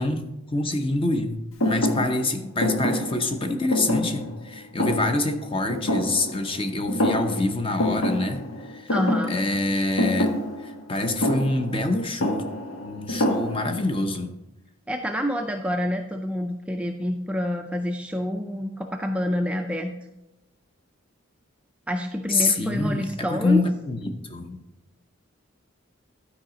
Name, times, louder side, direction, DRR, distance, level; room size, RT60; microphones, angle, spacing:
voice 1, 0.0-1.4 1.6-8.9 9.3-10.3 10.6-12.4 12.8-14.3 22.3-24.6, left 2 dB, 25° left, 7 dB, 0.7 m, -26 dB
Thump thud, 1.6-6.6 6.9-7.5 7.8-13.9, left 1 dB, 90° left, 1.3 m, -27 dB
voice 2, 8.9-9.4 14.9-19.9 21.9-23.6, equal, 5° right, 3 dB, 0.4 m, -27 dB
12.0 x 4.8 x 5.0 m, 0.94 s
head